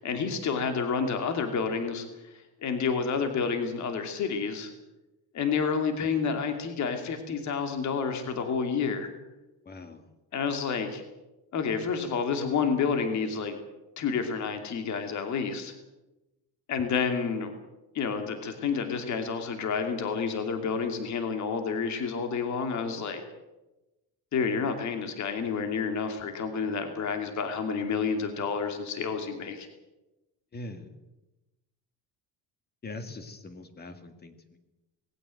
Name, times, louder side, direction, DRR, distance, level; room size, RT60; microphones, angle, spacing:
voice 1, 0.0-2.1 2.3-4.7 5.3-9.1 10.3-11.0 11.5-13.6 14.0-15.7 16.7-17.5 17.9-23.2 24.3-29.7, left 5 dB, 50° left, 6 dB, 2.7 m, -29 dB
voice 2, 9.6-10.0 30.5-31.0 32.8-34.6, left 2 dB, 25° left, 8 dB, 2.1 m, -42 dB
20.0 x 16.5 x 9.1 m, 1.0 s
cardioid pair, 175°, 38 cm